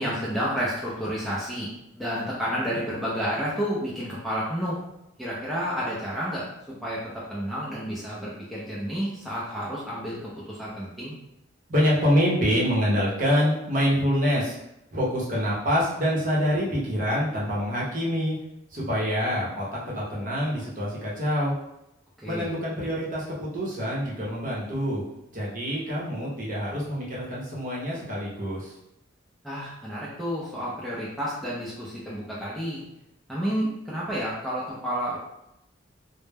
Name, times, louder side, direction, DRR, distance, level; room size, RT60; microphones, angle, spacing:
voice 1, 0.0-1.7 1.9-4.8 5.2-6.4 6.8-11.1 22.2-22.5 29.4-32.8 33.3-35.2, equal, ahead, -8 dB, 0.4 m, -30 dB
voice 2, 11.7-14.6 14.9-18.3 18.7-21.5 22.2-25.0 25.3-28.7, equal, 40° right, -6 dB, 0.7 m, -26 dB
2.1 x 2.0 x 3.2 m, 0.84 s
head